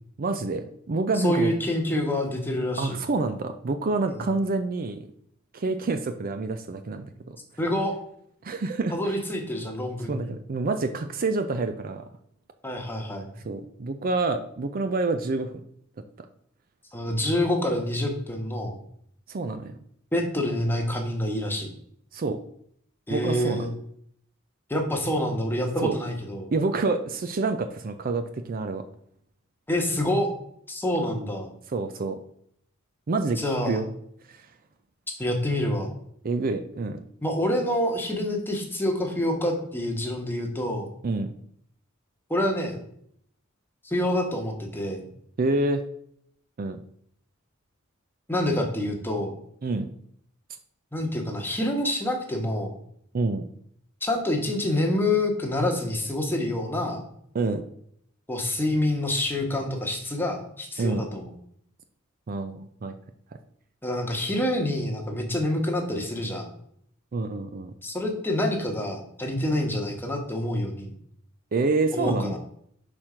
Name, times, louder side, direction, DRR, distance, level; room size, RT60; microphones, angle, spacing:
voice 1, 0.2-1.5 2.8-5.1 5.5-7.4 8.4-9.1 10.1-12.0 13.4-15.5 19.3-19.8 22.1-22.4 23.1-23.7 25.8-25.9 26.5-28.8 31.7-32.2 33.1-33.4 33.7-33.9 34.3-34.4 36.2-37.0 41.0-41.3 45.4-45.8 46.6-46.8 49.6-49.9 53.1-53.4 57.3-57.6 60.8-61.0 62.3-62.9 67.1-67.7 71.5-72.4, right 3 dB, 45° right, 8 dB, 0.5 m, -27 dB
voice 2, 1.2-3.0 4.1-4.2 7.6-8.0 8.9-10.3 12.6-13.3 16.9-18.8 20.1-21.7 23.1-23.7 24.7-26.5 29.7-30.3 30.7-31.5 33.4-33.8 35.2-36.0 37.2-40.9 42.3-42.8 43.8-45.1 48.3-49.3 50.9-52.8 54.0-57.0 58.3-61.3 63.8-66.5 67.8-70.9 71.9-72.4, left 1 dB, 10° left, 1 dB, 1.2 m, -27 dB
5.9 x 4.5 x 4.9 m, 0.67 s
head